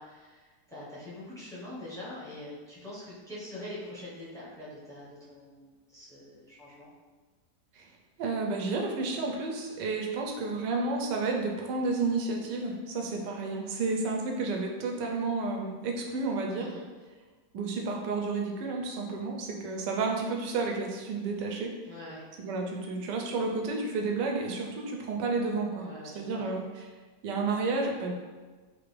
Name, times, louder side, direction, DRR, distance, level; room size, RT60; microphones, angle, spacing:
voice 1, 0.0-6.9 16.6-16.8 21.8-22.3 25.8-26.5, left 1 dB, 5° left, -8 dB, 0.4 m, -44 dB
voice 2, 8.2-16.7 17.5-21.7 22.4-25.9 26.1-26.9 27.2-28.1, right 3 dB, 85° right, 1 dB, 1.2 m, -31 dB
3.6 x 2.5 x 3.2 m, 1.3 s
omnidirectional pair, 1.8 m